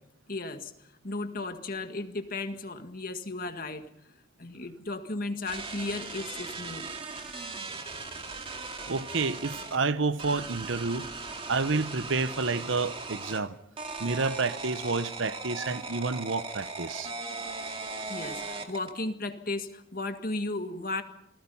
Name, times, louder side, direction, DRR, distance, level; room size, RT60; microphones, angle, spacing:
voice 1, 0.3-0.7 1.0-3.9 4.4-6.9 18.1-21.0, left 2 dB, 45° left, 1.8 m, -35 dB
sound 1, 5.5-9.8 10.2-13.4 13.8-19.0, right 3 dB, 30° right, 2.3 m, -38 dB
voice 2, 8.9-11.1 11.5-13.6 14.0-17.1, right 4 dB, 75° right, 1.0 m, -29 dB
28.5 x 19.5 x 5.7 m
head